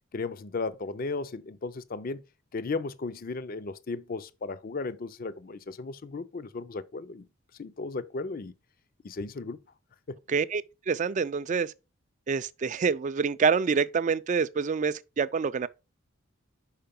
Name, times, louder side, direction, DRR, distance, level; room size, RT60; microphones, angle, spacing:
voice 1, 0.1-2.2 2.5-7.3 7.6-8.5 9.0-9.6 10.1-10.2, left 3 dB, 45° left, 0.5 m, -35 dB
voice 2, 10.3-11.7 12.3-15.7, right 5 dB, 35° right, 0.3 m, -27 dB
5.7 x 4.7 x 5.2 m
head